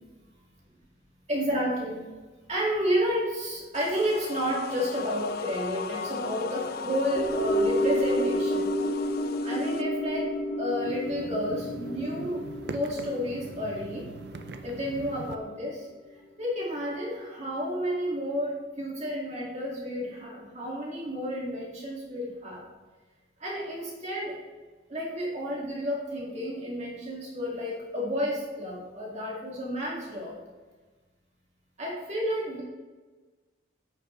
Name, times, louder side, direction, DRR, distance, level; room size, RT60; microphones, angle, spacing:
voice 1, 1.3-2.0 2.5-8.7 9.4-10.3 10.6-14.1 14.6-22.7 23.4-24.4 24.9-30.4 31.8-32.6, equal, 35° right, -4 dB, 2.1 m, -31 dB
sound 1, 3.7-9.8, left 5 dB, 50° left, 0.4 m, -37 dB
sound 2, 7.2-15.6 15.9-16.0, equal, 25° left, 0.9 m, -30 dB
sound 3, 10.7-15.4, right 3 dB, 55° right, 0.5 m, -42 dB
9.4 x 6.0 x 3.2 m, 1.3 s
head